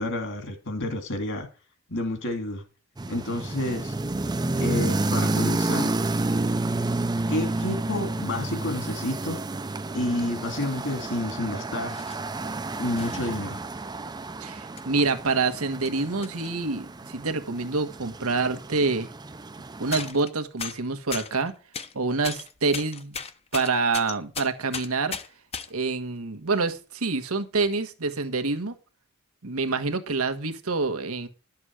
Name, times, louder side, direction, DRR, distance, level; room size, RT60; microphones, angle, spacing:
voice 1, 0.0-1.5 1.9-2.6 3.1-3.9 4.6-5.9 7.3-9.4 9.9-12.0 12.8-13.6, left 1 dB, 60° left, 6 dB, 2.6 m, -29 dB
sound 1, 3.0-20.1, right 2 dB, 20° right, 0.5 m, -30 dB
sound 2, 11.1-11.2 11.9-12.3 13.0-13.4 14.2-14.3 14.8-14.9 15.3-16.6 18.1-18.2 18.4-18.5 19.9-20.3 20.6-21.9 22.2-25.7 26.5-26.8, left 6 dB, 30° left, 0.7 m, -37 dB
voice 2, 14.4-19.1 19.8-21.5 21.9-23.2 23.5-25.2 25.7-28.7 29.4-31.3, right 3 dB, 90° right, 7 dB, 1.4 m, -27 dB
11.5 x 7.3 x 4.9 m, 0.34 s
head